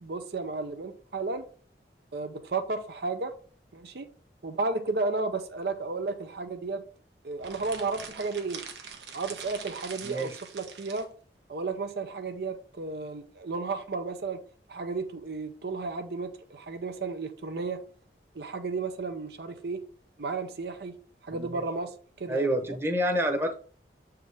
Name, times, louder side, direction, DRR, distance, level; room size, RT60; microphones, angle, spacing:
voice 1, 0.0-1.4 2.1-3.3 3.7-4.1 4.4-6.8 7.2-8.6 9.1-11.1 11.5-14.4 14.7-17.8 18.3-19.8 20.2-20.9 21.2-22.8, right 3 dB, 65° right, 0.6 m, -33 dB
sound 1, 7.4-11.1, right 6 dB, 80° right, 1.2 m, -43 dB
voice 2, 10.0-10.3 21.3-21.5 22.3-23.5, equal, 15° right, 0.9 m, -27 dB
7.2 x 4.7 x 3.4 m
head